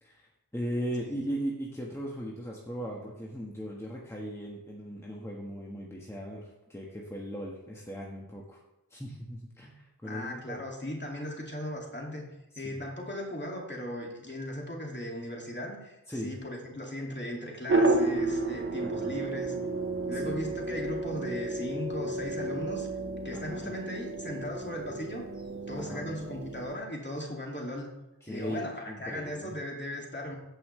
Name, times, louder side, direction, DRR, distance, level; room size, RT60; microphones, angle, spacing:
voice 1, 0.0-8.6 8.9-10.6 12.5-12.8 16.1-16.3 18.8-19.1 20.1-20.4 23.3-23.7 25.7-26.1 28.2-29.5, equal, 5° left, -3 dB, 1.4 m, -38 dB
voice 2, 10.0-12.3 12.6-16.0 16.2-19.5 20.1-22.9 23.2-27.9 28.3-30.3, left 1 dB, 30° left, -1 dB, 2.4 m, -37 dB
sound 1, 17.7-26.8, right 2 dB, 35° right, 1.0 m, -31 dB
15.5 x 5.5 x 3.3 m, 0.94 s
wide cardioid pair, 50°, 39 cm